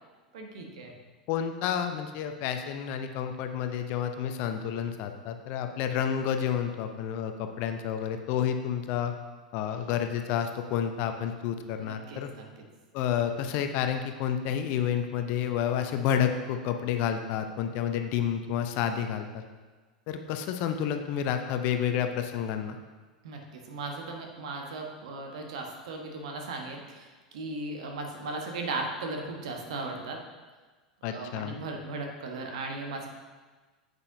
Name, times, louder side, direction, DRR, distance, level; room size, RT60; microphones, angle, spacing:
voice 1, 0.3-0.9 11.8-12.4 23.2-30.2 31.0-33.1, right 3 dB, 60° right, 2 dB, 1.3 m, -37 dB
voice 2, 1.3-9.1 9.5-12.3 12.9-19.4 20.1-22.8 31.0-31.6, left 9 dB, 45° left, 7 dB, 0.7 m, -30 dB
9.5 x 8.1 x 2.7 m, 1.3 s
figure-of-eight pair, 85°, 4 cm